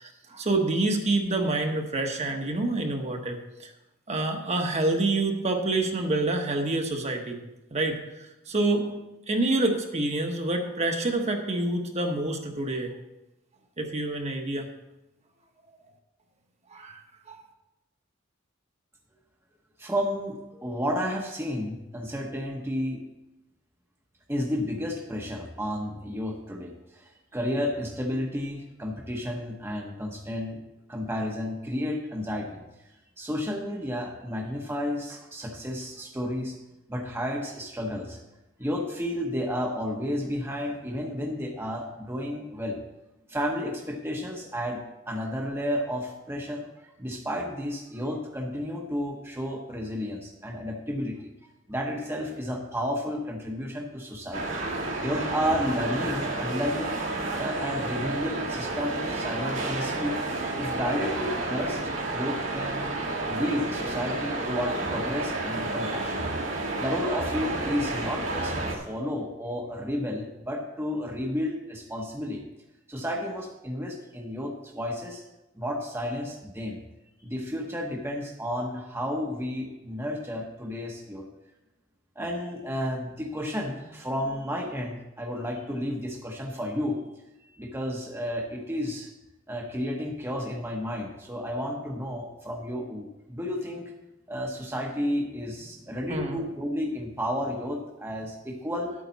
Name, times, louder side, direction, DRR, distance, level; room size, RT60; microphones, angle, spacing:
voice 1, 0.0-3.7 4.1-7.4 7.7-8.9 9.3-12.9 13.8-14.7 16.7-17.4 96.1-96.4, right 2 dB, 35° right, 3 dB, 1.2 m, -27 dB
voice 2, 19.8-23.0 24.3-30.6 30.9-32.6 33.2-36.6 36.9-38.2 38.6-42.8 43.3-51.3 51.7-54.4 55.0-57.0 57.4-60.2 60.6-62.9 63.3-66.2 66.8-72.4 72.9-75.2 75.6-76.8 77.2-81.3 82.2-87.0 87.5-89.1 89.5-93.9 94.3-98.9, equal, 15° right, 0 dB, 1.0 m, -32 dB
sound 1, 54.3-68.8, right 2 dB, 70° right, 2.2 m, -31 dB
11.0 x 8.6 x 4.1 m, 0.97 s
head